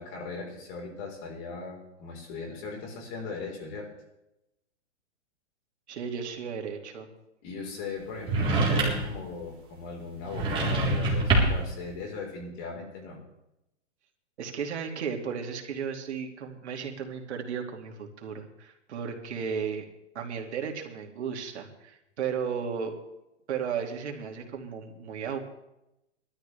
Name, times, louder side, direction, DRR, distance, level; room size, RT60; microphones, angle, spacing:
voice 1, 0.0-3.9 7.4-13.2, left 4 dB, 35° left, 0 dB, 4.5 m, -38 dB
voice 2, 5.9-7.1 14.4-19.8 20.1-22.9 23.5-25.4, right 6 dB, 70° right, 3 dB, 2.6 m, -34 dB
sound 1, 8.2-9.2 10.3-11.7, right 2 dB, 15° right, 3.9 m, -25 dB
20.0 x 13.0 x 3.5 m, 0.88 s
hypercardioid pair, 150°, 35 cm